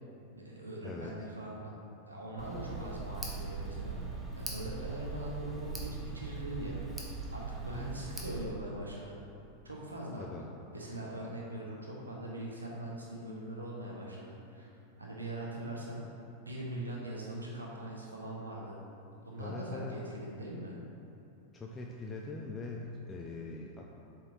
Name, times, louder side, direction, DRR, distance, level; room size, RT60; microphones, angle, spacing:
voice 1, 0.3-1.7 2.1-4.1 4.4-6.9 7.3-9.2 9.6-10.3 10.7-14.7 15.0-16.0 16.4-18.8 19.1-20.7, right 1 dB, 80° right, -3 dB, 1.3 m, -41 dB
Tick, 2.4-8.4, right 4 dB, 10° right, 1.0 m, -40 dB
voice 2, 19.4-20.0 21.5-23.8, left 3 dB, 15° left, -1 dB, 0.5 m, -42 dB
7.6 x 4.6 x 3.8 m, 2.9 s
figure-of-eight pair, 90°, 0 cm